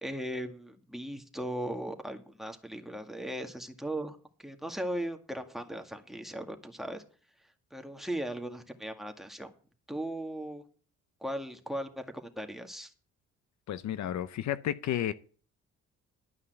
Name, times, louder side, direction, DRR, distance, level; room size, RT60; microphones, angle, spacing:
voice 1, 0.0-7.0 7.7-9.5 9.9-10.6 11.2-12.9, right 1 dB, ahead, 1.9 m, -38 dB
voice 2, 13.7-15.1, left 11 dB, 65° left, 0.8 m, -32 dB
12.5 x 5.6 x 8.0 m
cardioid pair, 90°, 30 cm